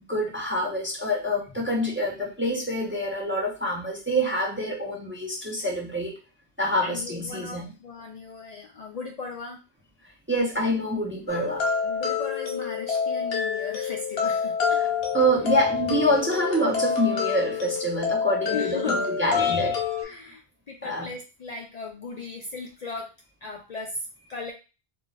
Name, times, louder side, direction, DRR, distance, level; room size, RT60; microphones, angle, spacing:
voice 1, 0.1-6.2 6.6-7.6 10.3-11.7 14.8-14.9 15.1-19.9 20.8-21.1, equal, 15° right, -1 dB, 0.5 m, -26 dB
voice 2, 6.8-9.6 11.4-11.6 11.8-14.8 18.4-19.1 20.0-20.4 20.7-23.1 23.4-24.5, left 4 dB, 55° left, 0 dB, 0.5 m, -37 dB
sound 1, 11.3-20.0, left 6 dB, 85° left, 1.1 m, -27 dB
2.5 x 2.3 x 3.9 m, 0.30 s
omnidirectional pair, 1.0 m